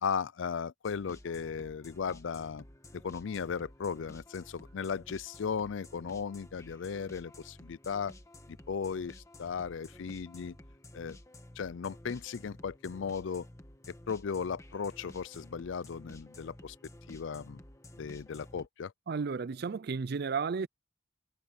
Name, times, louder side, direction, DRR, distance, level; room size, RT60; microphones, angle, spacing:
voice 1, 0.0-2.6 2.9-8.1 8.5-10.5 10.9-11.2 11.6-13.5 13.9-16.8 17.1-17.6 18.0-18.9, left 6 dB, 65° left, 0.4 m, -36 dB
sound 1, 0.8-18.7, left 1 dB, 15° left, 1.4 m, -53 dB
voice 2, 19.1-20.7, right 5 dB, 50° right, 0.4 m, -33 dB
head